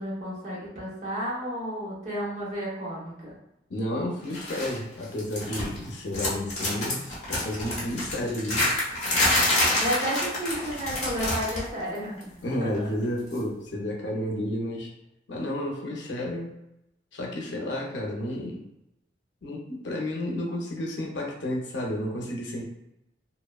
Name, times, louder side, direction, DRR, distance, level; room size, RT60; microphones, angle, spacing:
voice 1, 0.0-3.3 9.8-12.3 12.6-12.9, equal, 40° right, -6 dB, 0.9 m, -32 dB
voice 2, 3.7-8.7 12.4-14.9 15.3-16.5 17.1-18.7 19.4-22.6, left 1 dB, 90° left, -1 dB, 0.6 m, -31 dB
sound 1, 4.3-4.8 5.0-5.8 6.1-11.7 12.0-12.2 13.3-13.4, left 1 dB, 40° left, 0.9 m, -27 dB
2.8 x 2.1 x 2.3 m, 0.86 s
head